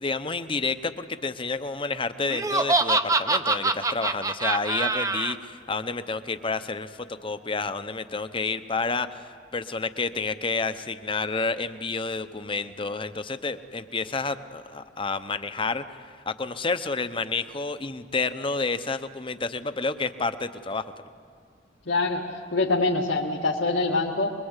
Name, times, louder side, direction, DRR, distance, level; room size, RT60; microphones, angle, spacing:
voice 1, 0.0-16.0 16.3-20.8, left 4 dB, 30° left, 11 dB, 0.8 m, -30 dB
Laughter, 2.3-5.3, right 3 dB, 20° right, 0.7 m, -24 dB
voice 2, 21.9-24.3, left 3 dB, 80° left, -3 dB, 1.9 m, -25 dB
25.0 x 22.5 x 8.2 m, 2.3 s
head